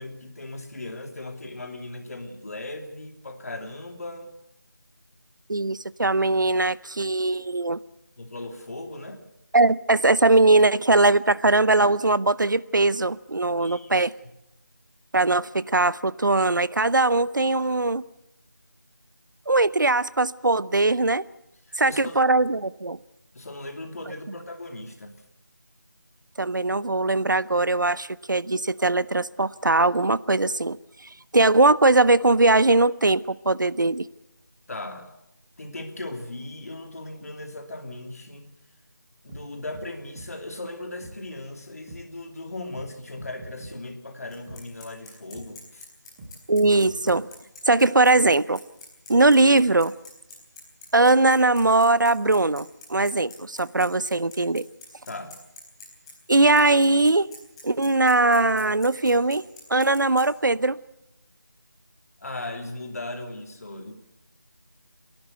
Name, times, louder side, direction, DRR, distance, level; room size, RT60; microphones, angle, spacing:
voice 1, 0.0-4.3 8.2-9.2 13.6-14.1 21.7-22.2 23.3-25.1 34.7-35.1 35.6-38.5 39.2-45.9 55.1-55.4 62.2-63.9, left 2 dB, 50° left, 5 dB, 2.8 m, -37 dB
voice 2, 5.5-7.8 9.5-14.1 15.1-18.0 19.5-21.2 21.8-23.0 26.4-30.8 31.3-34.0 46.5-47.3 47.7-48.6 49.1-49.9 50.9-54.6 56.3-57.3 57.6-60.8, right 2 dB, 75° right, 19 dB, 0.7 m, -20 dB
sound 1, 39.3-39.4 39.7-39.9 40.1-40.3 41.0-41.1 41.9-42.0 42.7-42.9 43.2-43.7 44.5-44.6 45.3-45.5 46.2-46.3 46.6-47.2, right 2 dB, 15° right, 2.1 m, -42 dB
Bicycle, 44.3-60.2, left 2 dB, 15° left, 4.2 m, -45 dB
29.5 x 11.5 x 8.0 m, 0.83 s
figure-of-eight pair, 165°, 10 cm